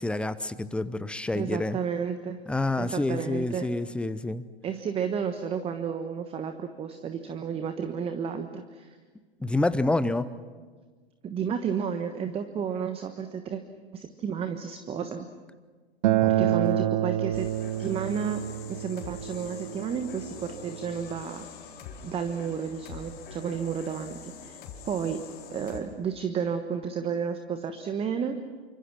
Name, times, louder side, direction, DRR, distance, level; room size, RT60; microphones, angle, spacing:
voice 1, 0.0-1.8 2.5-4.4 9.4-10.3 16.2-16.9, left 2 dB, 5° left, 15 dB, 0.7 m, -28 dB
voice 2, 1.3-2.4 2.8-3.7 4.6-8.9 11.2-13.6 13.9-15.3 16.4-17.5 17.8-18.4 18.7-21.5 22.0-24.6 24.9-25.2 25.5-28.4, right 7 dB, 20° right, 8 dB, 1.2 m, -32 dB
Acoustic guitar, 16.0-21.2, right 13 dB, 45° right, 1.1 m, -28 dB
sound 1, 17.3-25.8, left 7 dB, 30° left, 4.4 m, -45 dB
28.5 x 25.5 x 6.1 m, 1.4 s
figure-of-eight pair, 105°, 32 cm